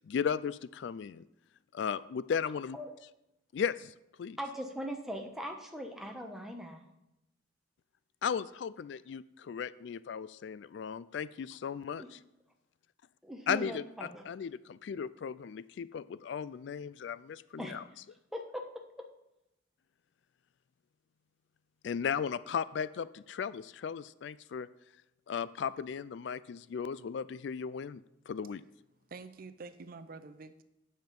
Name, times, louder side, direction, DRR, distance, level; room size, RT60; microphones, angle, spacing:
voice 1, 0.0-1.2 1.7-2.8 3.5-4.4 8.2-12.2 13.5-13.8 14.3-17.8 21.8-24.7 25.3-28.0 28.3-28.6, left 7 dB, 65° left, 17 dB, 0.3 m, -36 dB
voice 2, 4.4-6.8 12.0-12.1 13.2-14.2 17.6-17.7 18.3-19.1, equal, ahead, 2 dB, 1.1 m, -40 dB
voice 3, 29.1-30.6, right 4 dB, 50° right, 10 dB, 0.6 m, -47 dB
9.2 x 7.7 x 5.3 m, 0.87 s
head